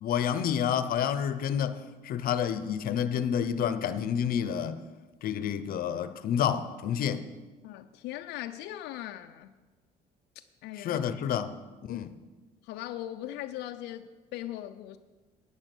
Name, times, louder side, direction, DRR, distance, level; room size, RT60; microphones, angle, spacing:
voice 1, 0.0-4.8 5.2-7.3 10.8-11.5 11.9-12.1, left 8 dB, 60° left, 0.8 m, -29 dB
voice 2, 7.6-9.5 10.4-11.1 11.9-12.1 12.6-15.0, left 13 dB, 90° left, 0.5 m, -39 dB
11.0 x 8.8 x 6.2 m
cardioid pair, 110°, 17 cm